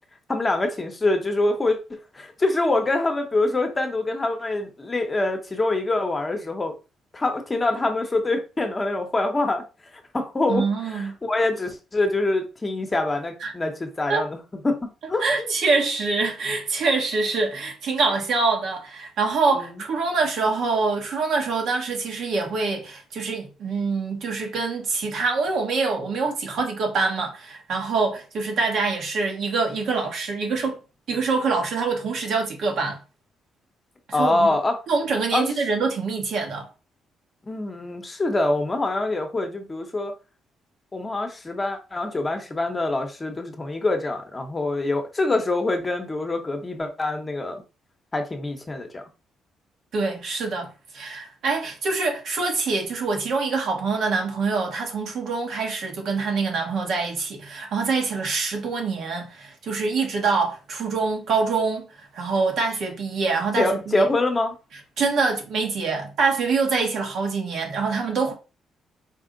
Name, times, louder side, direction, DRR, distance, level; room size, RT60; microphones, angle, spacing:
voice 1, 0.3-6.7 7.1-9.6 9.9-15.5 19.6-19.8 34.1-34.8 35.3-35.5 37.4-40.1 40.9-47.6 48.1-49.0 63.6-64.5, left 2 dB, 25° left, 0.9 m, -25 dB
voice 2, 10.5-11.1 13.4-13.5 14.1-14.2 15.2-30.8 31.1-33.0 34.2-34.5 34.9-36.7 49.9-64.1 65.0-68.3, right 4 dB, 70° right, 1.2 m, -25 dB
4.3 x 2.0 x 3.8 m
cardioid pair, 90°, 0 cm